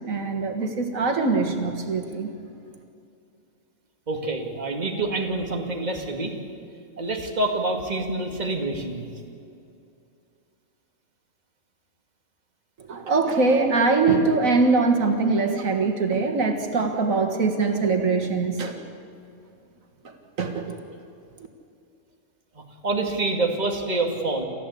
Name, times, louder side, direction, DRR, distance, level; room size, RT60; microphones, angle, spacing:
voice 1, 0.0-2.3 12.9-18.8 20.4-20.8, right 3 dB, 85° right, 5 dB, 2.1 m, -22 dB
voice 2, 4.1-6.3 7.0-9.1 22.6-24.4, right 2 dB, 35° right, 2 dB, 2.3 m, -27 dB
29.0 x 14.0 x 8.4 m, 2.5 s
omnidirectional pair, 1.4 m